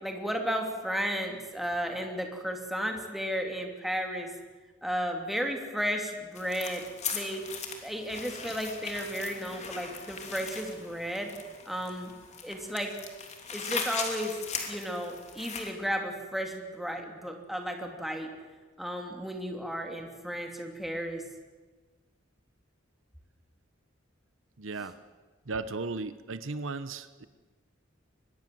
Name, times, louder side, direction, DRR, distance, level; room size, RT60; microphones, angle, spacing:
voice 1, 0.0-4.3 4.8-6.8 7.1-7.4 7.8-11.3 11.7-12.1 12.4-12.9 13.5-14.3 14.7-18.3 18.8-21.2, equal, ahead, 2 dB, 3.0 m, -33 dB
sound 1, 6.4-15.7, left 5 dB, 35° left, 3.1 m, -39 dB
voice 2, 24.6-25.0 25.4-27.3, right 3 dB, 75° right, 13 dB, 1.0 m, -36 dB
24.0 x 20.5 x 7.8 m, 1.3 s
head